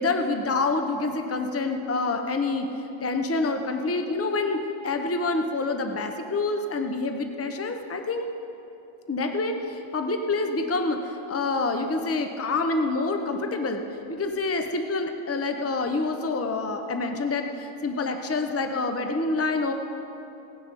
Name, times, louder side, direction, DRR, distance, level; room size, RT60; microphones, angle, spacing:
voice 1, 0.0-2.7 3.0-8.3 9.1-13.8 14.1-19.7, left 3 dB, 15° left, 5 dB, 0.5 m, -27 dB
17.5 x 9.9 x 5.3 m, 3.0 s
omnidirectional pair, 1.4 m